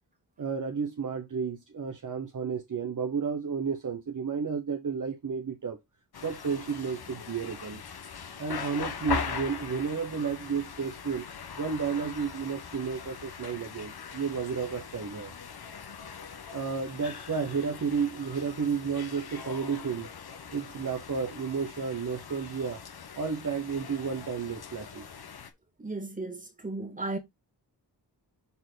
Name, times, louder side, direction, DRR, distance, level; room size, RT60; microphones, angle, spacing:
voice 1, 0.4-5.8 6.2-7.8 8.4-11.3 11.6-15.3 16.5-20.1 20.5-22.8 23.2-25.0, right 6 dB, 45° right, 1.0 m, -32 dB
sound 1, 6.1-25.5, left 6 dB, 65° left, 1.2 m, -41 dB
voice 2, 25.8-27.2, right 2 dB, 20° right, 2.3 m, -35 dB
7.0 x 4.5 x 3.9 m
wide cardioid pair, 110°, 42 cm